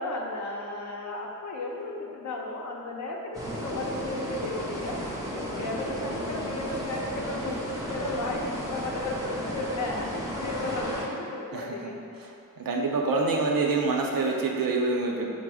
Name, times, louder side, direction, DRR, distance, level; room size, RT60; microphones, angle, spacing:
voice 1, 0.0-12.0, left 2 dB, 55° left, -1 dB, 0.6 m, -34 dB
sound 1, 3.3-11.1, equal, 10° right, 0.6 m, -34 dB
voice 2, 11.5-15.3, right 3 dB, 85° right, 0 dB, 0.6 m, -27 dB
5.0 x 2.0 x 4.7 m, 2.5 s
wide cardioid pair, 125°, 33 cm